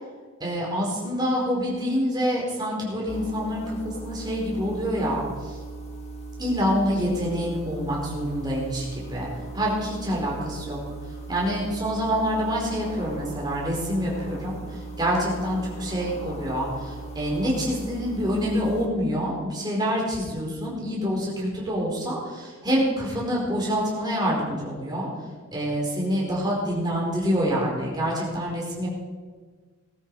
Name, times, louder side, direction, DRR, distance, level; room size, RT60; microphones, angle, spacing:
voice 1, 0.4-5.6 6.4-9.3 9.5-10.8 11.3-14.5 15.0-25.1 25.5-28.9, equal, 20° right, -4 dB, 4.6 m, -26 dB
sound 1, 3.1-18.9, right 2 dB, 30° left, 1.8 m, -38 dB
20.0 x 12.5 x 4.8 m, 1.5 s
head